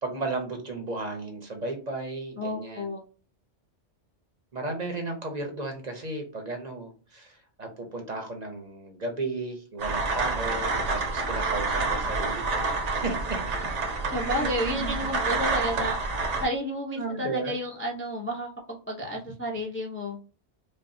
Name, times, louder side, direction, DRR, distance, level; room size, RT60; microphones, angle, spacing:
voice 1, 0.0-2.9 4.5-13.6 14.1-15.0 17.0-17.5, right 3 dB, 40° right, 3 dB, 0.8 m, -34 dB
voice 2, 2.4-3.0 14.1-16.0 16.4-20.2, equal, 15° left, -1 dB, 0.5 m, -31 dB
sound 1, 9.8-16.5, right 3 dB, 85° right, 1.2 m, -28 dB
5.2 x 2.3 x 2.6 m, 0.38 s
omnidirectional pair, 1.2 m